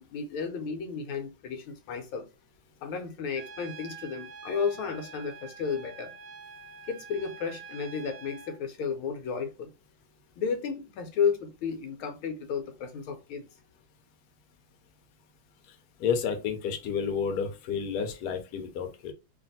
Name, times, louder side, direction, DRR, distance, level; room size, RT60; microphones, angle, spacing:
voice 1, 0.0-2.3 2.8-6.1 6.9-9.7 10.4-13.4, left 6 dB, 85° left, 1.6 m, -33 dB
Trumpet, 3.4-8.6, right 5 dB, 70° right, 1.2 m, -46 dB
voice 2, 16.0-19.1, left 6 dB, 65° left, 1.1 m, -30 dB
3.4 x 2.5 x 4.0 m
omnidirectional pair, 2.2 m